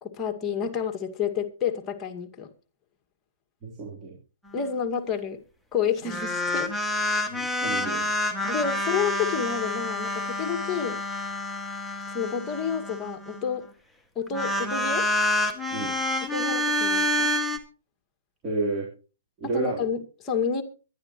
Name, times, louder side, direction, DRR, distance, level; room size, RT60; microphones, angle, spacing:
voice 1, 0.0-2.5 4.5-5.4 5.7-7.3 8.5-11.0 12.1-13.6 14.2-15.1 16.2-17.3 19.4-20.6, left 7 dB, 20° left, 4 dB, 2.1 m, -30 dB
voice 2, 3.6-4.1 7.3-8.0 15.7-15.9 18.4-18.9 19.4-19.8, right 3 dB, 25° right, -3 dB, 3.7 m, -30 dB
sound 1, 6.1-13.4 14.3-17.6, left 1 dB, ahead, 2.0 m, -28 dB
23.0 x 10.5 x 3.1 m, 0.35 s
hypercardioid pair, 135°, 0 cm